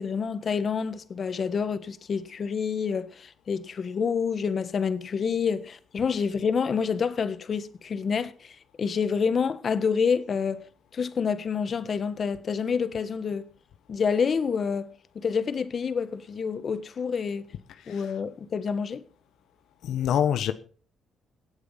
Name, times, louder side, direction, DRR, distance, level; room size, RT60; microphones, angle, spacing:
voice 1, 0.0-10.6 10.9-13.4 13.9-14.9 15.1-17.4 17.9-19.0, left 6 dB, 45° left, 1.3 m, -28 dB
voice 2, 17.8-18.1 19.8-20.5, left 9 dB, 75° left, 1.0 m, -26 dB
16.5 x 8.4 x 5.6 m
cardioid pair, 90°, 0 cm